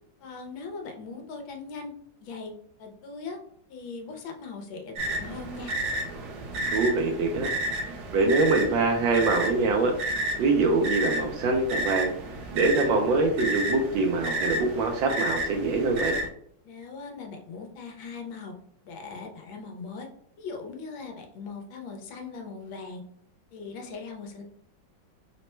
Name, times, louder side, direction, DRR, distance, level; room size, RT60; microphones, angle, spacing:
voice 1, 0.2-1.9 2.2-2.5 2.8-3.4 3.7-5.7 16.6-18.5 18.8-20.1 20.4-23.0 23.5-24.4, left 4 dB, 90° left, 3 dB, 1.6 m, -40 dB
sound 1, 5.0-16.3, right 1 dB, 65° right, 1.1 m, -32 dB
voice 2, 6.6-7.5 7.8-9.9 10.4-12.1 12.5-16.2, right 3 dB, 80° right, 2 dB, 1.4 m, -24 dB
4.0 x 2.1 x 4.2 m, 0.65 s
omnidirectional pair, 2.1 m